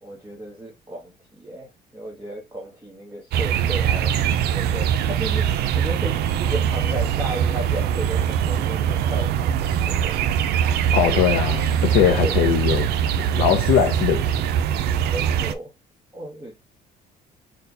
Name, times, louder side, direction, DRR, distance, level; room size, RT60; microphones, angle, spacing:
voice 1, 0.0-4.1 4.5-10.2 11.0-11.2 15.1-15.7 16.1-16.5, right 1 dB, 15° right, 1.3 m, -35 dB
sound 1, 3.3-15.5, right 9 dB, 75° right, 0.5 m, -22 dB
voice 2, 10.9-12.9 13.2-14.4, left 9 dB, 80° left, 0.7 m, -21 dB
4.3 x 2.3 x 4.0 m
cardioid pair, 110°, 17 cm